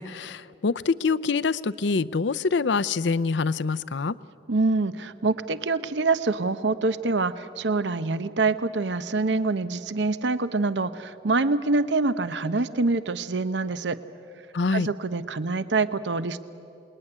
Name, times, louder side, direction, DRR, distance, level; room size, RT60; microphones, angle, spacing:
voice 1, 0.0-4.2 14.5-14.9, left 4 dB, 75° left, 17 dB, 0.6 m, -25 dB
voice 2, 4.5-14.0 14.7-16.4, right 3 dB, 75° right, 13 dB, 0.8 m, -25 dB
27.5 x 20.5 x 9.9 m, 2.7 s
head